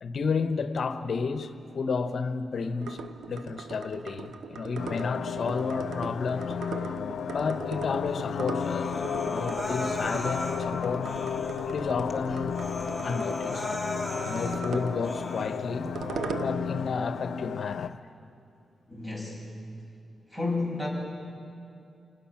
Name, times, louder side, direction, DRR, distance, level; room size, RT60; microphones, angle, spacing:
voice 1, 0.0-11.4 11.6-12.5 13.0-13.7 14.2-15.9 16.4-18.0, left 4 dB, 65° left, 1.1 m, -32 dB
sound 1, 2.8-16.9, right 5 dB, 85° right, 0.9 m, -39 dB
sound 2, 4.8-17.9, left 8 dB, 85° left, 0.4 m, -33 dB
Human voice, 8.6-10.6 11.0-11.7 12.1-12.2 12.5-14.6 15.0-15.6, left 1 dB, 10° left, 2.8 m, -36 dB
voice 2, 18.9-19.4 20.3-20.9, left 3 dB, 10° right, 6.9 m, -31 dB
29.0 x 19.5 x 6.0 m
cardioid pair, 90°, 0 cm